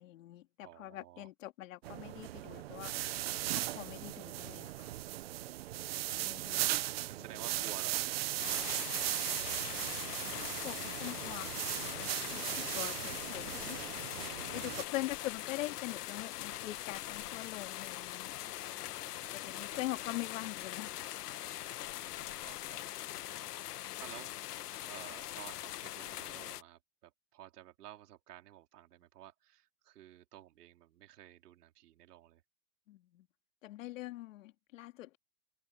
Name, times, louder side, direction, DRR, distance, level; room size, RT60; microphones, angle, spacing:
voice 1, 0.0-3.0 3.5-4.9 6.1-6.7 10.4-13.8 14.5-18.3 19.3-21.1 32.9-33.3 33.6-35.2, left 16 dB, 50° left, 2.5 m, -43 dB
voice 2, 0.6-1.3 5.5-9.2 14.4-14.9 18.7-20.0 21.8-22.8 23.1-23.5 24.0-24.4 24.8-32.4, right 13 dB, 70° right, 4.0 m, -54 dB
sound 1, 1.8-14.8, right 15 dB, 40° right, 0.8 m, -38 dB
sound 2, 8.4-26.6, left 14 dB, 70° left, 1.4 m, -42 dB
supercardioid pair, 180°, 48 cm